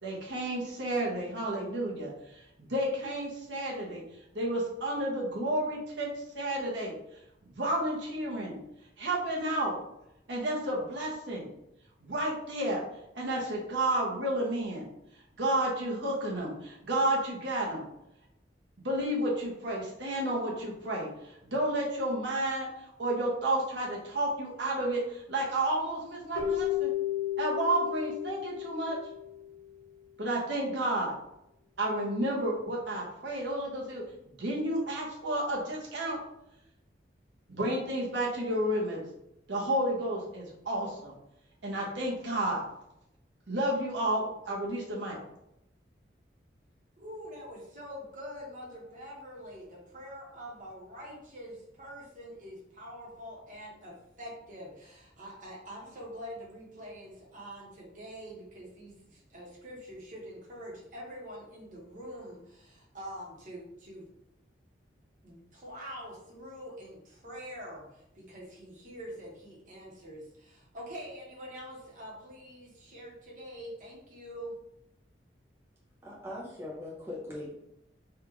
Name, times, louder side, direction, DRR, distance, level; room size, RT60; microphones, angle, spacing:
voice 1, 0.0-4.0 4.3-6.9 7.6-8.6 9.0-9.8 10.3-11.5 12.0-12.8 13.1-14.8 15.4-17.8 18.8-22.7 23.0-26.9 27.4-29.0 30.2-31.1 31.8-34.0 34.4-36.2 37.5-39.0 39.5-41.1 41.6-42.6 43.5-45.2, right 1 dB, 85° right, -3 dB, 0.9 m, -31 dB
Keyboard (musical), 26.3-29.6, left 11 dB, 50° left, 1.0 m, -33 dB
voice 2, 47.0-64.1 65.2-74.5, equal, 45° right, -4 dB, 1.0 m, -45 dB
voice 3, 76.0-77.5, left 1 dB, 15° right, -6 dB, 0.6 m, -40 dB
3.5 x 2.4 x 3.0 m, 0.82 s
head